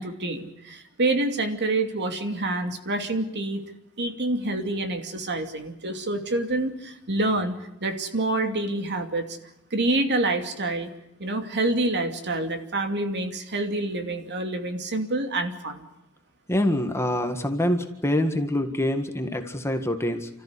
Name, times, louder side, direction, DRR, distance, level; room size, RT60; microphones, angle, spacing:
voice 1, 0.0-3.6 4.0-9.4 9.7-10.9 11.2-15.9, right 2 dB, 50° right, 6 dB, 2.7 m, -27 dB
voice 2, 16.5-20.3, left 1 dB, 10° left, 6 dB, 1.7 m, -25 dB
30.0 x 14.0 x 9.9 m, 0.89 s
head